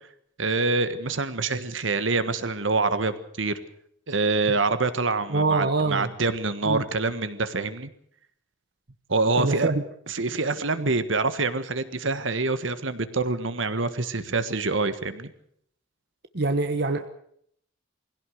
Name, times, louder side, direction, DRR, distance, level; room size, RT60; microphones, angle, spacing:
voice 1, 0.4-3.6 4.1-7.9 9.1-9.7 10.1-15.3, right 3 dB, 75° right, 12 dB, 1.5 m, -26 dB
voice 2, 5.3-6.1 6.6-6.8 9.4-9.8 10.8-10.9 16.3-17.1, right 3 dB, 55° right, 7 dB, 1.2 m, -24 dB
21.5 x 16.5 x 7.9 m, 0.67 s
head